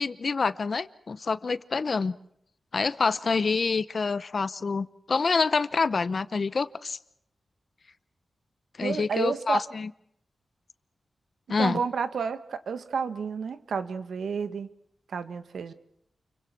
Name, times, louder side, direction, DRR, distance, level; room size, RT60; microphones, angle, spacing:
voice 1, 0.0-2.2 2.7-7.0 8.8-9.9 11.5-11.8, left 4 dB, 50° left, 16 dB, 0.9 m, -27 dB
voice 2, 8.8-9.6 11.6-14.7 15.1-15.7, right 6 dB, 90° right, 12 dB, 1.5 m, -30 dB
29.0 x 23.5 x 6.1 m, 0.72 s
wide cardioid pair, 105°, 0 cm